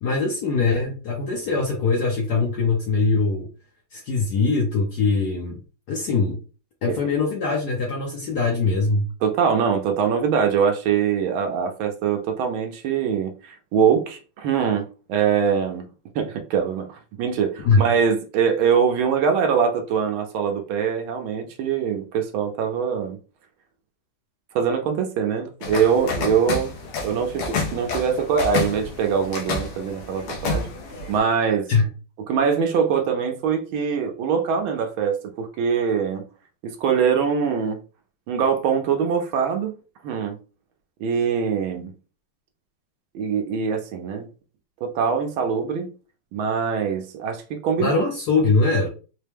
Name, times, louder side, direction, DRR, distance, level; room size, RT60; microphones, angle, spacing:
voice 1, 0.0-3.5 3.9-5.6 5.9-6.4 6.8-9.1 17.6-17.9 31.7-31.9 47.8-48.9, left 4 dB, 65° left, 1.0 m, -22 dB
voice 2, 9.2-15.8 16.1-23.2 24.5-26.7 27.0-30.7 31.1-31.7 32.3-36.2 36.6-37.8 38.3-39.7 40.0-40.4 41.0-41.9 43.1-44.3 44.8-45.9 46.3-48.0, right 7 dB, 75° right, 1.3 m, -23 dB
sound 1, 25.6-31.2, left 3 dB, 85° left, 1.8 m, -29 dB
4.5 x 2.1 x 3.3 m
omnidirectional pair, 2.4 m